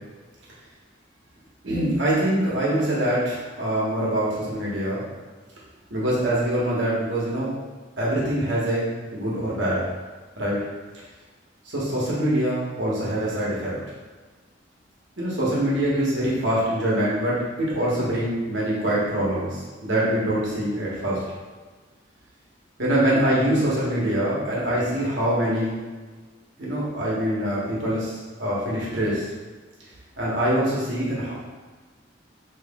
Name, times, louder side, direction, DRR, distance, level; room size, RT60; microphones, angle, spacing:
voice 1, 1.6-5.0 5.9-7.5 8.0-8.9 9.1-9.9 10.4-10.6 11.6-13.7 15.2-21.2 22.8-25.8 26.6-29.3 30.2-31.3, right 1 dB, 70° right, -6 dB, 1.2 m, -24 dB
3.1 x 2.9 x 3.5 m, 1.4 s
head